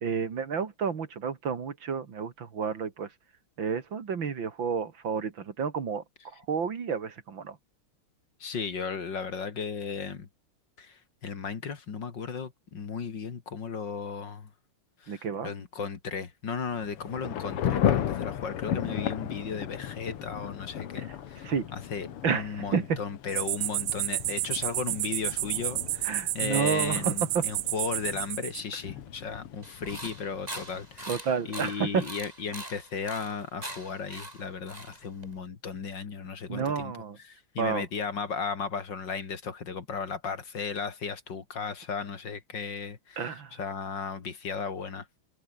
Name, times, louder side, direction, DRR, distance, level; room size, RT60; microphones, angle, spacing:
voice 1, 0.0-3.1 3.6-6.0 6.5-7.6 15.1-15.5 21.4-21.7 22.2-23.0 26.0-27.4 31.1-32.1 36.5-37.2 37.6-37.9 43.2-43.6, right 6 dB, 60° right, 2.8 m, -30 dB
voice 2, 8.4-10.3 10.8-14.5 15.0-36.9 37.2-45.1, left 5 dB, 55° left, 2.8 m, -35 dB
Thunder / Rain, 16.7-31.2, left 10 dB, 90° left, 2.3 m, -35 dB
sound 1, 23.3-28.6, right 16 dB, 80° right, 1.5 m, -31 dB
sound 2, 29.6-35.4, right 1 dB, 15° right, 6.4 m, -42 dB
omnidirectional pair, 2.4 m